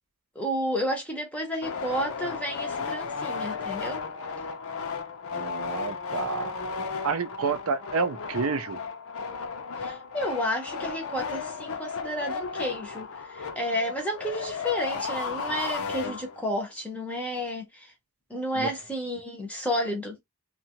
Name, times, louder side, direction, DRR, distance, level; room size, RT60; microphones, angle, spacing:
voice 1, 0.4-4.0 9.8-17.9 18.3-20.2, equal, 5° left, 0.6 m, -31 dB
sound 1, 1.6-16.6, left 5 dB, 80° left, 0.5 m, -34 dB
voice 2, 5.3-6.5 7.0-8.8 18.6-18.7, right 5 dB, 75° right, 0.5 m, -29 dB
2.7 x 2.3 x 2.8 m
head